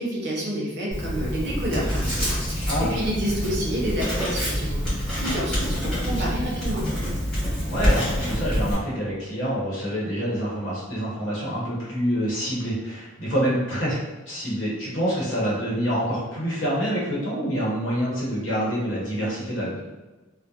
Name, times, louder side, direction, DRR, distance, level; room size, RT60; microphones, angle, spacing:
voice 1, 0.0-6.9, right 1 dB, 55° right, -4 dB, 0.7 m, -29 dB
Writing, 0.9-8.7, equal, 5° left, 1.0 m, -26 dB
voice 2, 7.7-19.8, equal, 75° left, -7 dB, 0.9 m, -26 dB
2.4 x 2.0 x 2.8 m, 1.2 s
head